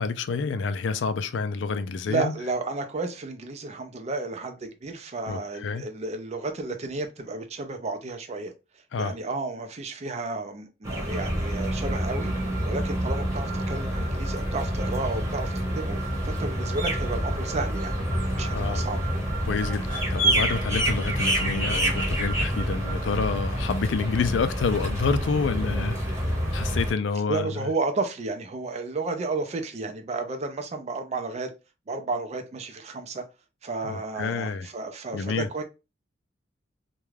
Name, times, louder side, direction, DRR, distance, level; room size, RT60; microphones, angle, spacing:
voice 1, 0.0-2.3 5.3-5.9 8.9-9.1 18.4-18.9 19.5-27.7 33.8-34.7 35.1-35.5, left 4 dB, 70° left, 0.4 m, -28 dB
voice 2, 2.1-8.5 9.0-12.3 12.6-16.0 16.2-18.0 18.4-19.1 27.3-31.5 31.9-33.2 33.6-35.6, right 3 dB, 35° right, 0.4 m, -32 dB
sound 1, 10.8-26.9, right 1 dB, 15° right, 1.0 m, -27 dB
2.4 x 2.2 x 3.1 m
head